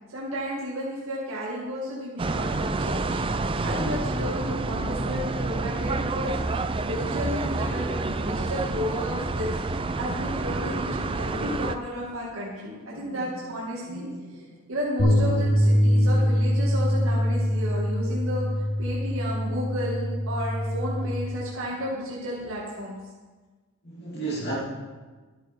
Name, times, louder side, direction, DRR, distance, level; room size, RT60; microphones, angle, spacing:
voice 1, 0.1-3.2 3.6-9.6 10.0-14.1 14.3-14.4 14.7-18.4 18.8-23.0, equal, 60° right, -5 dB, 2.1 m, -32 dB
sound 1, 2.2-11.8, right 3 dB, 25° right, 0.4 m, -28 dB
voice 2, 13.0-13.3 13.9-14.2 23.8-24.6, right 2 dB, 45° left, -6 dB, 2.6 m, -34 dB
sound 2, 15.0-21.2, equal, 90° left, 2.5 m, -23 dB
12.5 x 9.2 x 4.5 m, 1.3 s
head